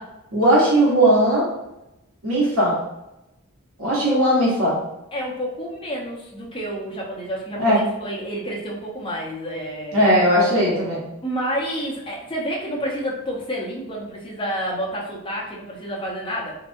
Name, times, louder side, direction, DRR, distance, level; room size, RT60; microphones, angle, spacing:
voice 1, 0.3-1.5 2.2-2.8 3.8-4.8 7.6-7.8 9.9-11.1, right 1 dB, 75° right, -6 dB, 1.1 m, -18 dB
voice 2, 5.1-10.0 11.2-16.6, equal, 25° left, -3 dB, 0.7 m, -29 dB
3.3 x 3.0 x 2.6 m, 0.91 s
head